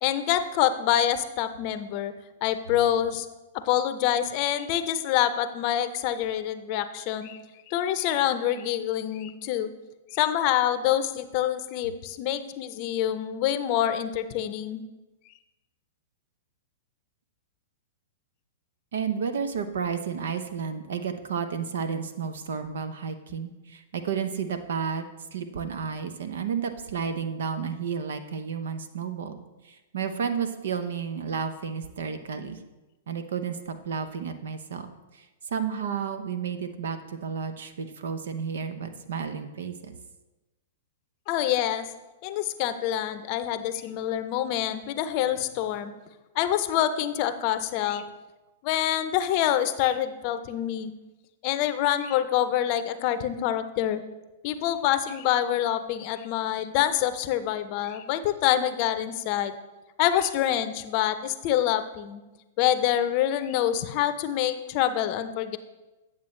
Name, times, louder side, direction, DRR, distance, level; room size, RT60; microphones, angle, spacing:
voice 1, 0.0-2.1 2.4-3.3 3.6-7.4 7.7-9.7 10.1-14.8 41.3-41.9 42.2-45.9 46.3-48.0 48.6-50.9 51.4-54.0 54.4-59.6 60.0-62.2 62.6-65.6, left 11 dB, 45° left, 11 dB, 0.6 m, -26 dB
voice 2, 18.9-25.0 25.3-29.4 29.6-32.6 33.1-34.9 35.1-35.2 35.5-39.9, right 6 dB, 70° right, 9 dB, 0.8 m, -32 dB
9.4 x 7.4 x 3.2 m, 1.1 s
hypercardioid pair, 110°, 0 cm